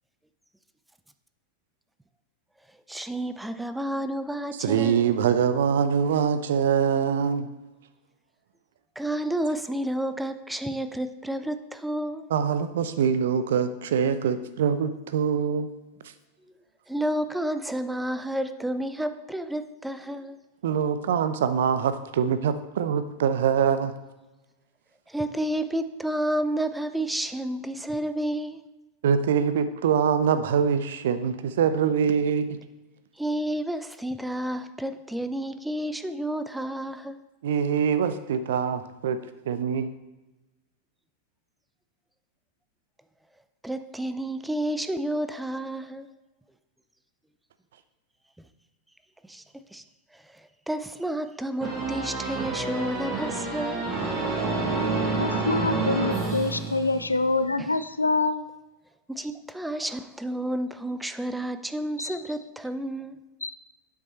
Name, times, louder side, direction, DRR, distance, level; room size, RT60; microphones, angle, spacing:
voice 1, 2.9-5.1 9.0-12.3 16.9-20.4 25.1-28.6 33.2-37.2 43.6-46.1 49.3-49.4 49.7-49.8 50.7-53.9 57.6-57.7 59.1-63.2, right 1 dB, 5° right, 10 dB, 0.5 m, -30 dB
voice 2, 4.6-7.5 12.3-15.7 20.6-23.9 29.0-32.5 37.4-39.2 39.5-39.9, right 7 dB, 60° right, 12 dB, 0.6 m, -24 dB
sound 1, 51.6-57.3, right 3 dB, 25° right, 2.1 m, -28 dB
voice 3, 55.2-58.4 62.0-62.2 63.4-63.6, left 3 dB, 80° left, 13 dB, 0.4 m, -26 dB
7.7 x 6.0 x 4.2 m, 1.1 s
figure-of-eight pair, 90°, 0 cm